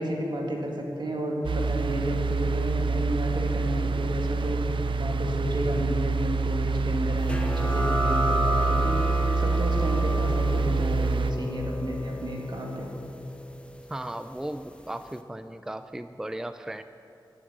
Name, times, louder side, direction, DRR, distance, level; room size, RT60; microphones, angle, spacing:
voice 1, 0.0-12.9, equal, 65° right, 0 dB, 2.2 m, -31 dB
sound 1, 1.4-11.3, right 4 dB, 90° right, 0.5 m, -26 dB
sound 2, 7.3-14.5, equal, 15° left, 0.8 m, -32 dB
voice 2, 13.9-16.8, right 1 dB, 5° right, 10 dB, 0.4 m, -36 dB
12.0 x 7.9 x 8.8 m, 2.7 s
wide cardioid pair, 95°, 8 cm